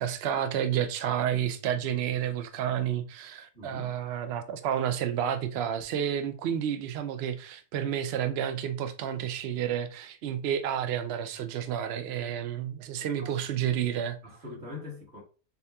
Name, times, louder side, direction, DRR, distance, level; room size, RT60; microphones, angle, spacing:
voice 1, 0.0-14.2, right 9 dB, 85° right, 0.5 m, -30 dB
voice 2, 3.5-4.0 13.1-13.4 14.2-15.2, left 3 dB, 40° right, 1.8 m, -43 dB
6.9 x 2.7 x 2.3 m
omnidirectional pair, 1.7 m